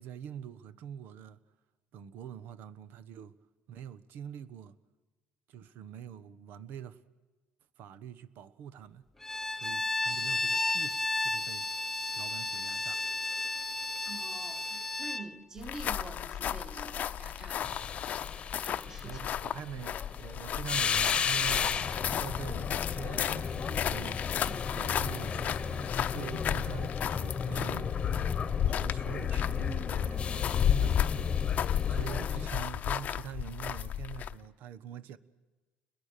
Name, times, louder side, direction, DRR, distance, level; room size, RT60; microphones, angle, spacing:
voice 1, 0.0-1.4 1.9-3.4 3.7-4.8 5.5-7.0 7.8-9.0 9.5-11.7 12.1-13.0 19.0-24.3 24.7-27.9 28.6-31.6 31.9-35.2, right 9 dB, 65° right, 1.2 m, -44 dB
Bowed string instrument, 9.2-15.3, left 2 dB, 5° left, 0.9 m, -33 dB
voice 2, 14.1-17.9 18.6-19.2 24.5-24.7, right 2 dB, 15° right, 2.1 m, -46 dB
sound 1, 15.6-34.4, left 10 dB, 45° left, 0.8 m, -33 dB
sound 2, 17.6-32.5, left 6 dB, 30° left, 1.2 m, -34 dB
29.5 x 21.5 x 6.8 m
cardioid pair, 125°, 4 cm